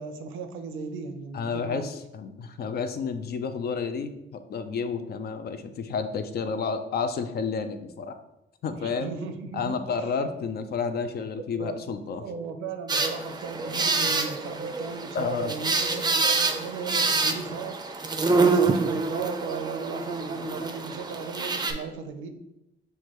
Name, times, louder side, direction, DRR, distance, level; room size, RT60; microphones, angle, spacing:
voice 1, 0.0-1.9 8.7-10.1 11.6-11.8 12.1-18.0 18.3-22.3, right 5 dB, 85° right, 6 dB, 0.6 m, -36 dB
voice 2, 1.3-8.2 8.6-9.1 9.5-12.2 15.1-15.6, left 5 dB, 55° left, 9 dB, 0.5 m, -30 dB
sound 1, 12.9-21.7, right 3 dB, 20° right, 0.5 m, -26 dB
6.3 x 2.2 x 3.0 m, 0.91 s
cardioid pair, 90°, 20 cm